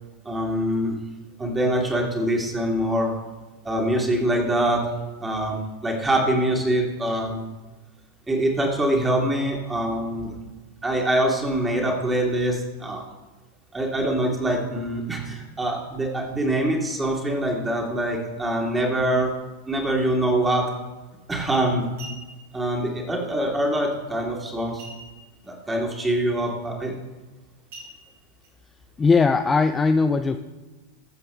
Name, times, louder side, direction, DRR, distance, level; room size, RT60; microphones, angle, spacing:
voice 1, 0.2-1.0 1.4-3.1 3.6-4.8 5.2-7.5 8.3-10.3 10.8-13.0 13.7-19.3 19.7-20.7 21.3-21.9 22.5-24.8 25.5-26.9, right 1 dB, 10° right, -1 dB, 2.3 m, -24 dB
sound 1, 21.1-21.3 21.8-22.6 24.8-25.5 25.8-25.9 26.4-26.6 27.7-28.5 29.1-29.2, right 2 dB, 55° right, 3.2 m, -43 dB
voice 2, 29.0-30.4, left 4 dB, 15° left, 7 dB, 0.4 m, -19 dB
22.0 x 7.6 x 2.3 m, 1.2 s
figure-of-eight pair, 90°, 0 cm